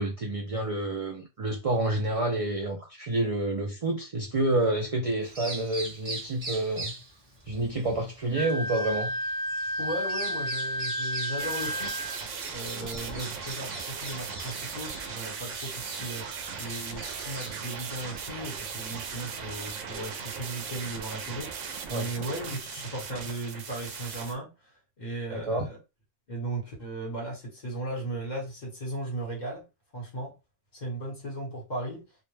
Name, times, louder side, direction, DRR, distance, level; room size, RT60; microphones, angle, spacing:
voice 1, 0.0-6.9 7.5-9.1 21.9-22.1 25.3-25.7, right 2 dB, 60° right, 0.3 m, -28 dB
Bird vocalization bird call bird song, 5.2-22.6, right 2 dB, 35° right, 1.0 m, -43 dB
Wind instrument woodwind instrument, 8.3-12.2, equal, 75° left, 0.9 m, -32 dB
voice 2, 9.8-12.0 12.5-25.8 26.3-29.6 29.9-30.3 30.7-32.0, right 1 dB, 40° left, 1.2 m, -36 dB
sound 1, 11.4-24.3, right 6 dB, 85° right, 0.9 m, -38 dB
2.4 x 2.1 x 3.1 m
omnidirectional pair, 1.2 m